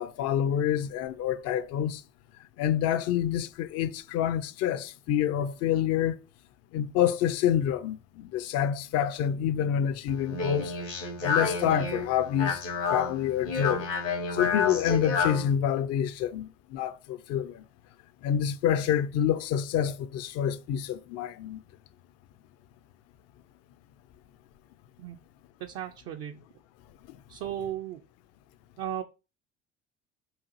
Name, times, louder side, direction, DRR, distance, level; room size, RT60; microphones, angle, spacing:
voice 1, 0.0-2.0 2.6-6.2 6.7-10.7 11.2-12.6 12.9-13.9 14.3-17.6 18.2-21.6, left 9 dB, 45° left, 0.4 m, -27 dB
Speech, 10.1-15.5, left 4 dB, 80° left, 1.5 m, -30 dB
voice 2, 25.6-26.4 27.3-28.0 28.8-29.0, right 10 dB, 45° right, 0.4 m, -35 dB
4.8 x 2.4 x 2.9 m
figure-of-eight pair, 60°, 35 cm